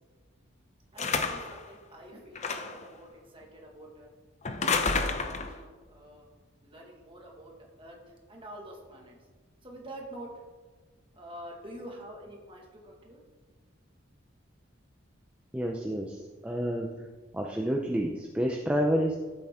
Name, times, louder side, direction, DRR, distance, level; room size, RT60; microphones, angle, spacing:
voice 1, 0.9-4.1 4.5-6.3 6.6-7.5 7.8-9.2 9.6-10.4 11.1-13.2, right 1 dB, 25° right, 0 dB, 1.8 m, -47 dB
sound 1, 1.0-1.6 2.4-2.9 4.4-5.6, left 4 dB, 35° left, 0.7 m, -29 dB
voice 2, 15.5-16.9 17.3-19.2, equal, 5° right, 0 dB, 0.6 m, -29 dB
14.0 x 7.8 x 3.7 m, 1.4 s
head